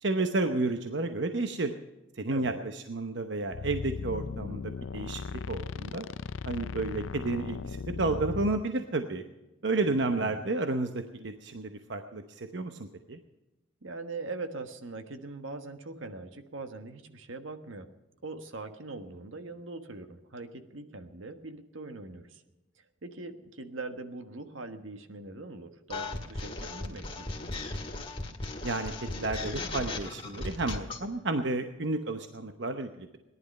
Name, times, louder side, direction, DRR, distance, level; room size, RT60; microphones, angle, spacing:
voice 1, 0.0-1.7 2.2-6.1 6.5-9.2 9.6-13.2 28.6-33.2, right 2 dB, 65° right, 7 dB, 0.9 m, -31 dB
voice 2, 2.3-2.6 9.8-10.4 13.8-17.9 18.2-22.4 23.0-27.6, right 3 dB, 85° right, 8 dB, 1.4 m, -42 dB
sound 1, 3.5-8.6, left 5 dB, 80° left, 0.4 m, -37 dB
sound 2, 25.9-31.0, left 2 dB, 25° left, 1.8 m, -37 dB
18.5 x 11.0 x 5.4 m, 1.0 s
head